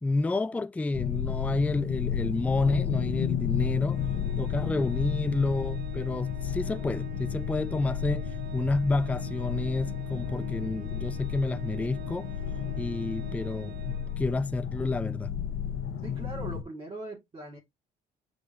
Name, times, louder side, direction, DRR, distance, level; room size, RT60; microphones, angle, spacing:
voice 1, 0.0-4.0 4.4-8.3 8.5-12.3 12.8-15.3, left 2 dB, 10° left, 0.4 m, -29 dB
sound 1, 0.9-16.6, left 8 dB, 60° left, 1.2 m, -32 dB
Organ, 3.9-14.6, right 9 dB, 65° right, 0.7 m, -47 dB
voice 2, 16.0-17.6, right 2 dB, 30° right, 2.9 m, -40 dB
6.3 x 5.4 x 3.1 m
cardioid pair, 110°, 17 cm